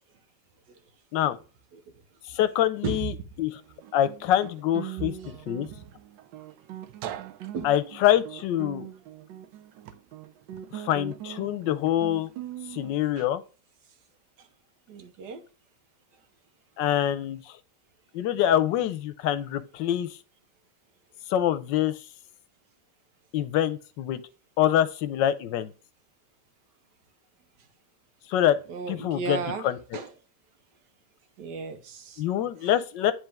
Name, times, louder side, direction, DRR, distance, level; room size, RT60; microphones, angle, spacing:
voice 1, 2.3-3.1 3.4-3.6 3.9-5.7 7.6-8.9 10.7-12.3 12.7-13.4 16.8-17.5 18.1-20.1 21.3-21.9 23.3-24.2 24.6-25.7 28.3-28.6 28.9-29.8 32.2-33.1, left 11 dB, 90° left, 1.3 m, -25 dB
voice 2, 2.8-3.2 5.6-5.8 7.5-7.7 13.2-13.3 14.9-15.4 28.7-29.7 29.9-30.1 31.4-32.2 32.6-32.7, right 5 dB, 70° right, 1.5 m, -34 dB
Guitar, 3.6-13.0, right 11 dB, 90° right, 1.3 m, -41 dB
9.8 x 3.4 x 3.4 m
omnidirectional pair, 1.9 m